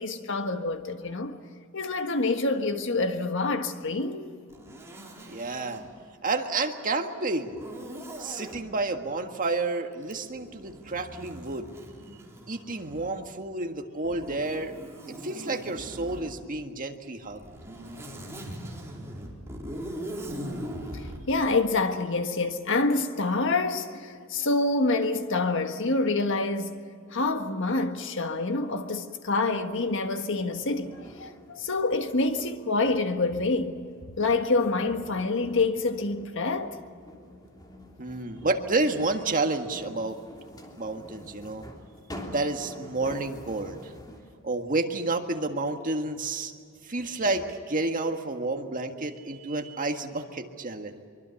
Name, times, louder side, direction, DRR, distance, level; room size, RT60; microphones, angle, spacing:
voice 1, 0.0-1.4 1.7-4.3 20.3-20.6 20.9-26.8 27.1-33.8 34.2-36.8, left 3 dB, 65° left, 1.6 m, -27 dB
Zipper (clothing), 4.5-5.9 7.5-8.6 10.0-13.3 14.0-16.3 17.2-21.2, equal, 15° right, 4.3 m, -40 dB
voice 2, 5.3-5.8 6.2-7.6 8.2-11.7 12.5-14.8 15.1-17.5 38.0-40.2 40.7-41.7 42.3-43.9 44.4-46.5 46.8-51.1, right 2 dB, 40° right, 1.7 m, -30 dB
sound 1, 29.2-44.4 46.2-46.3 47.0-47.5, left 1 dB, 20° left, 3.2 m, -47 dB
24.5 x 24.0 x 7.2 m
head